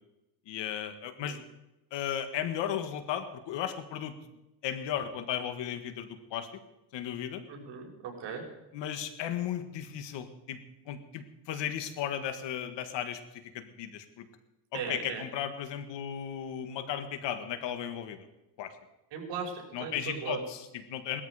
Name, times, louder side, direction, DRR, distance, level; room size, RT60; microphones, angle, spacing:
voice 1, 0.5-1.4 1.9-4.1 4.6-6.5 6.9-7.4 8.7-10.6 10.9-13.2 13.5-14.3 14.7-18.3 18.6-18.7 19.7-21.2, left 9 dB, 70° left, 9 dB, 1.9 m, -35 dB
voice 2, 7.5-8.4 14.7-15.2 19.1-20.4, right 6 dB, 65° right, 0 dB, 5.8 m, -38 dB
19.5 x 13.5 x 5.0 m, 0.95 s
cardioid pair, 120°, 44 cm